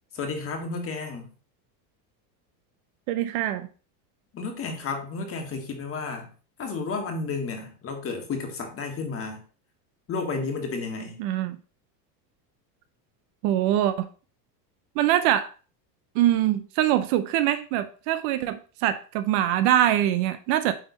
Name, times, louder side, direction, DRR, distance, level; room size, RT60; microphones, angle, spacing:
voice 1, 0.1-1.3 4.3-6.3 6.6-9.4 10.1-11.2, left 4 dB, 30° left, 4 dB, 1.7 m, -32 dB
voice 2, 3.1-3.7 11.2-11.6 13.4-14.1 15.0-15.5 16.1-20.7, right 12 dB, 55° right, 11 dB, 0.7 m, -23 dB
9.3 x 3.6 x 4.1 m, 0.38 s
supercardioid pair, 145°, 48 cm